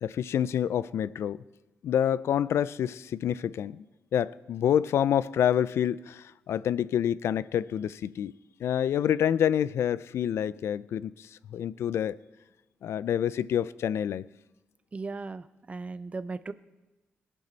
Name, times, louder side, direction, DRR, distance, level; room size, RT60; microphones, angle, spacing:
voice 1, 0.0-1.4 1.8-3.8 4.1-8.3 8.6-12.2 12.8-14.3, left 9 dB, 85° left, 0.4 m, -27 dB
voice 2, 14.9-16.5, right 3 dB, 30° right, 0.6 m, -37 dB
22.0 x 11.0 x 4.0 m
cardioid pair, 95°, 4 cm